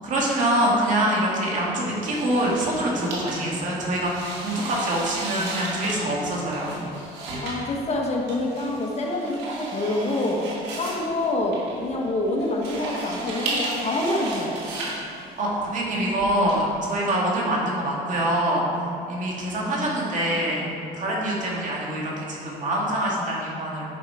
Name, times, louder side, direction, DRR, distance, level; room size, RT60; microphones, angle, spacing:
voice 1, 0.0-6.7 15.4-20.7 21.0-23.8, right 1 dB, 50° right, -4 dB, 2.4 m, -25 dB
sound 1, 2.0-16.5, right 2 dB, 85° right, 2.3 m, -34 dB
voice 2, 7.4-10.4 10.8-14.6, left 2 dB, 40° left, 0 dB, 1.4 m, -26 dB
10.5 x 5.6 x 4.9 m, 2.5 s
cardioid pair, 110°, 17 cm